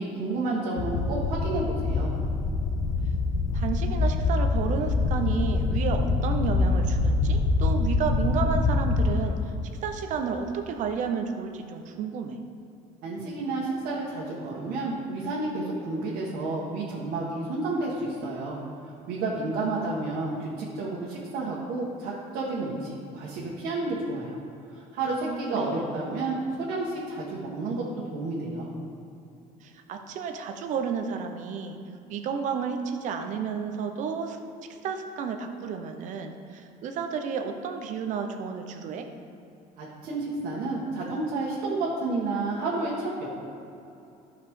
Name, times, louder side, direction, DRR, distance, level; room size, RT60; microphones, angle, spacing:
voice 1, 0.0-2.1 13.0-18.6 19.1-24.4 24.7-26.4 26.7-27.8 28.1-28.7 39.8-43.3, right 2 dB, 80° right, -6 dB, 1.7 m, -30 dB
sound 1, 0.8-9.2, left 3 dB, 65° left, 1.0 m, -25 dB
voice 2, 3.5-9.4 9.7-12.4 25.3-26.1 29.6-31.8 32.1-34.4 34.8-39.1, right 6 dB, 55° right, 6 dB, 0.9 m, -31 dB
14.0 x 5.7 x 3.8 m, 2.8 s
cardioid pair, 160°, 15 cm